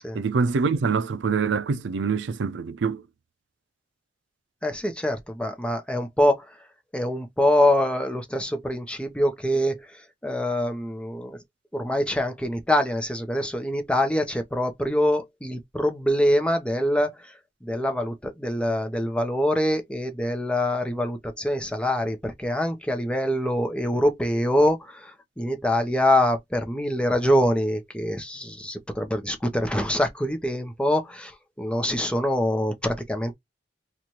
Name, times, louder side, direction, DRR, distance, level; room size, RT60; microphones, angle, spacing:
voice 1, 0.1-3.0, right 5 dB, 70° right, 0.4 m, -25 dB
voice 2, 4.6-6.7 6.9-11.4 11.7-33.3, left 1 dB, 5° left, 0.8 m, -25 dB
3.1 x 2.5 x 4.1 m
head